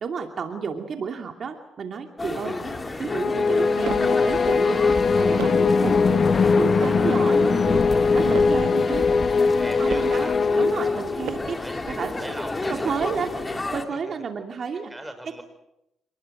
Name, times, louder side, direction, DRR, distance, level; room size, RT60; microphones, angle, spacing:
voice 1, 0.0-2.6 3.0-9.1 9.5-12.1 12.7-14.9, right 5 dB, 50° right, 4 dB, 2.6 m, -31 dB
sound 1, 2.2-13.9, left 2 dB, 20° left, 2.8 m, -32 dB
sound 2, 3.1-11.5, left 4 dB, 45° left, 1.1 m, -21 dB
sound 3, 3.4-4.2 4.9-5.8 6.4-7.1 7.8-8.7 9.4-10.2 10.9-11.7, right 10 dB, 85° right, 1.5 m, -37 dB
voice 2, 7.2-7.8 8.4-8.5 9.6-10.4 11.6-13.0 13.9-14.1 14.7-15.4, right 1 dB, 5° right, 8 dB, 5.5 m, -40 dB
27.5 x 20.0 x 7.9 m, 0.85 s
cardioid pair, 90°, 0 cm